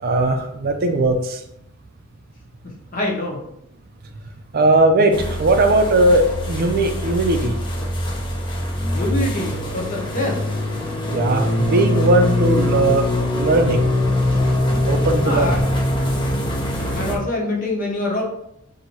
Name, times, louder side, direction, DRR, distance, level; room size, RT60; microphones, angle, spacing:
voice 1, 0.0-1.4 4.5-7.6 11.1-13.1 13.3-13.9 14.9-15.6, right 2 dB, 45° right, 5 dB, 0.5 m, -18 dB
voice 2, 2.6-3.4 8.9-10.5 15.2-15.6 16.9-18.2, left 1 dB, 40° left, -1 dB, 1.0 m, -25 dB
sound 1, 5.1-17.2, left 1 dB, 25° left, 0.7 m, -22 dB
4.1 x 2.7 x 4.5 m, 0.77 s
head